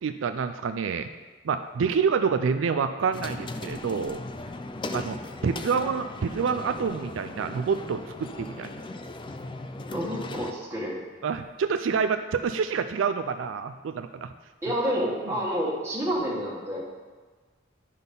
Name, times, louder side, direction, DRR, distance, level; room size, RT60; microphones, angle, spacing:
voice 1, 0.0-1.1 1.4-4.2 4.9-8.7 11.2-14.3, right 6 dB, 85° right, 8 dB, 0.4 m, -27 dB
sound 1, 3.1-10.5, left 2 dB, 25° left, 0.4 m, -38 dB
voice 2, 9.9-11.0 14.6-16.8, equal, 15° right, -6 dB, 1.6 m, -29 dB
10.0 x 4.0 x 5.3 m, 1.4 s
head